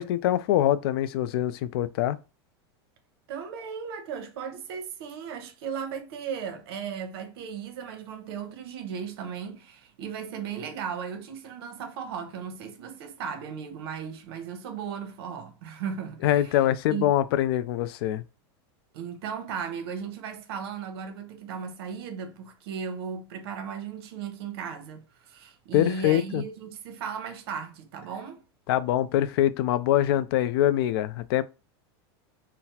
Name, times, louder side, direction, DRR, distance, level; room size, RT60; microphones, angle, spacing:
voice 1, 0.0-2.2 16.2-18.2 25.7-26.4 28.7-31.4, left 12 dB, 70° left, 0.4 m, -24 dB
voice 2, 3.3-16.6 16.9-17.1 18.9-28.4, right 7 dB, 70° right, 0.9 m, -36 dB
3.9 x 2.1 x 2.8 m
supercardioid pair, 140°, 13 cm